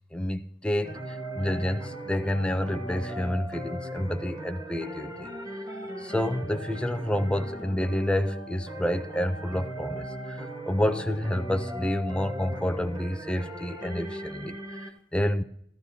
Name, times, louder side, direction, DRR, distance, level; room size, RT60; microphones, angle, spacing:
voice 1, 0.1-5.3 6.0-15.4, left 1 dB, 5° left, 0.5 m, -29 dB
sound 1, 0.8-14.9, right 1 dB, 20° right, 1.3 m, -38 dB
14.5 x 13.5 x 2.8 m
head